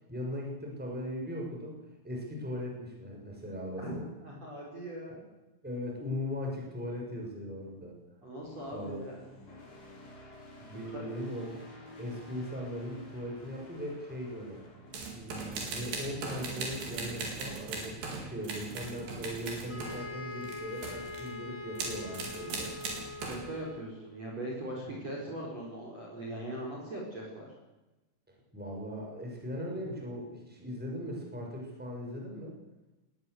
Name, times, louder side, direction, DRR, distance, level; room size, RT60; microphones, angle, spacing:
voice 1, 0.1-4.0 5.6-8.0 8.7-9.0 10.6-11.5 12.0-14.6 15.1-23.0 28.5-32.5, equal, ahead, -1 dB, 5.9 m, -39 dB
voice 2, 4.2-5.2 8.2-9.2 9.5-9.6 10.7-11.0 23.2-27.5, right 1 dB, 30° right, -2 dB, 5.3 m, -40 dB
sound 1, 8.4-18.7, left 1 dB, 45° left, 9.0 m, -53 dB
sound 2, 14.9-20.1 20.3-21.3 21.8-23.5, right 3 dB, 55° right, 6.1 m, -39 dB
sound 3, 19.7-24.1, left 3 dB, 20° left, 1.7 m, -43 dB
21.0 x 18.5 x 8.0 m, 1.1 s
omnidirectional pair, 5.9 m